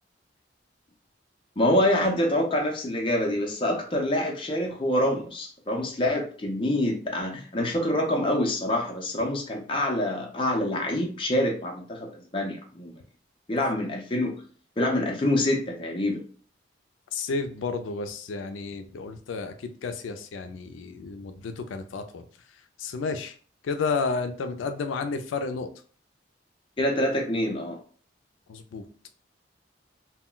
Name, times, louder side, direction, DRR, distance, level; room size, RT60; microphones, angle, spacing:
voice 1, 1.6-12.9 13.5-14.3 14.8-16.2 26.8-27.8, left 1 dB, 25° left, 0.5 m, -26 dB
voice 2, 17.1-22.2 22.8-23.3 23.6-25.7 28.5-28.8, left 4 dB, 85° left, 0.3 m, -31 dB
2.2 x 2.1 x 3.7 m
head